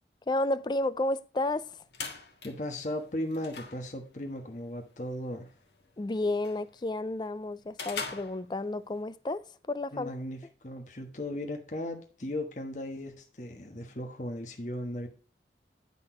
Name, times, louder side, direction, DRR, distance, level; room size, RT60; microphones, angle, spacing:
voice 1, 0.3-1.8 6.0-10.1, left 2 dB, 25° left, 0.3 m, -31 dB
sound 1, 1.5-9.0, left 5 dB, 75° left, 1.6 m, -45 dB
voice 2, 2.4-5.5 9.9-15.1, left 1 dB, 45° left, 1.2 m, -37 dB
11.0 x 4.1 x 4.3 m
head